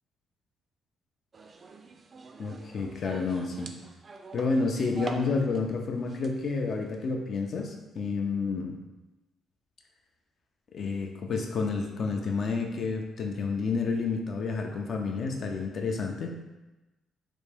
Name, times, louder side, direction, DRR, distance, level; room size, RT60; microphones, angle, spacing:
sound 1, 1.3-5.7 6.0-7.1, right 3 dB, 40° right, 0.3 m, -45 dB
voice 1, 2.4-3.7 4.3-8.8 10.7-16.3, left 4 dB, 55° left, 3 dB, 0.5 m, -30 dB
3.4 x 2.6 x 3.3 m, 1.1 s
cardioid pair, 90°, 0 cm